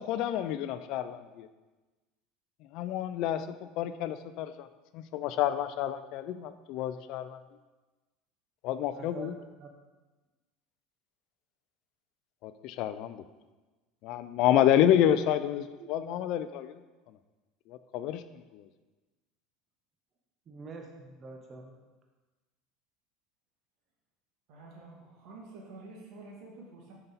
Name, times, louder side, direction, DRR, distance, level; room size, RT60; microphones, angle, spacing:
voice 1, 0.0-1.5 2.7-4.7 4.9-7.4 8.6-9.3 12.4-13.2 14.0-16.8 17.7-18.7, left 11 dB, 60° left, 12 dB, 0.4 m, -29 dB
voice 2, 8.9-9.7 15.7-15.9 20.5-21.7, right 4 dB, 35° right, 2 dB, 0.9 m, -46 dB
voice 3, 24.5-26.9, right 3 dB, 65° right, -1 dB, 1.9 m, -49 dB
5.8 x 5.3 x 4.1 m, 1.2 s
supercardioid pair, 120°, 0 cm